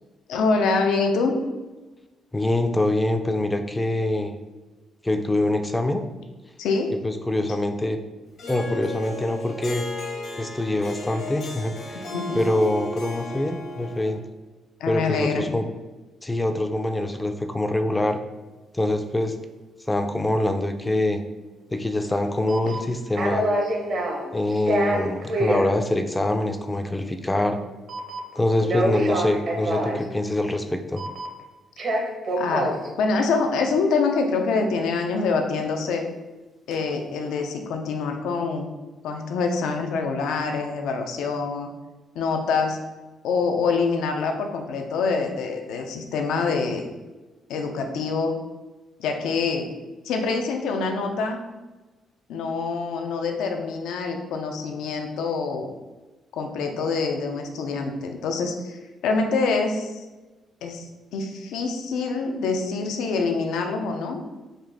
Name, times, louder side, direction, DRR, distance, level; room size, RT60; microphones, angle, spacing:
voice 1, 0.3-1.3 6.6-6.9 12.1-12.4 14.8-15.5 32.4-36.0 36.7-38.7 39.0-41.7 42.2-42.8 43.2-46.9 47.5-48.3 49.0-49.7 50.0-51.4 52.3-55.7 56.3-60.0 60.6-60.9 61.1-64.2, left 4 dB, 85° left, 4 dB, 0.5 m, -25 dB
voice 2, 2.3-4.3 5.0-6.0 7.0-8.0 8.5-9.8 10.4-12.0 12.3-14.2 14.9-15.7 16.2-18.2 18.7-19.4 19.9-21.2 21.7-23.5 24.3-27.6 28.4-31.0, left 1 dB, 15° left, 7 dB, 0.4 m, -24 dB
Harp, 8.4-14.2, left 1 dB, 70° left, 1.0 m, -34 dB
sound 1, 22.1-22.2 22.5-22.9 23.2-24.2 24.5-25.7 27.9-28.3 28.6-30.0 31.0-31.4 31.8-32.9 36.7-36.9, right 1 dB, 60° right, 0.9 m, -25 dB
3.9 x 2.5 x 3.4 m, 1.2 s
cardioid pair, 90°, 0 cm